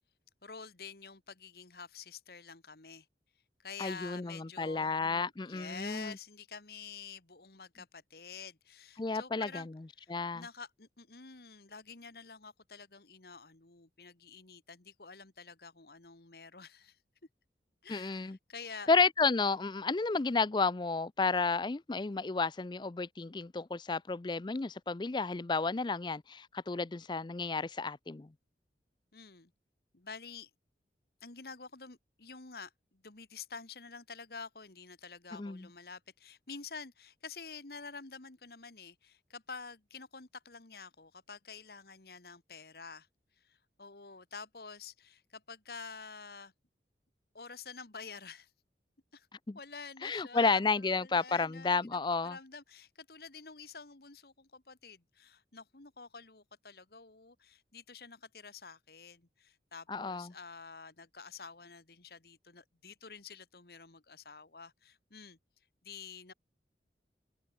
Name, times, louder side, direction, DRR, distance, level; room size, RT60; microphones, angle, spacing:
voice 1, 0.4-3.1 3.6-9.7 10.0-17.0 17.8-18.9 29.1-29.5 29.9-30.5 31.2-43.1 43.4-46.5 47.3-48.5 49.1-49.3 49.6-65.4 65.8-66.3, left 5 dB, 60° left, 1.7 m, -49 dB
voice 2, 3.8-6.2 9.0-9.6 10.1-10.4 17.9-18.4 18.9-28.3 35.3-35.7 49.5-49.6 50.0-52.4 59.9-60.3, left 4 dB, 25° left, 0.4 m, -31 dB
open air
head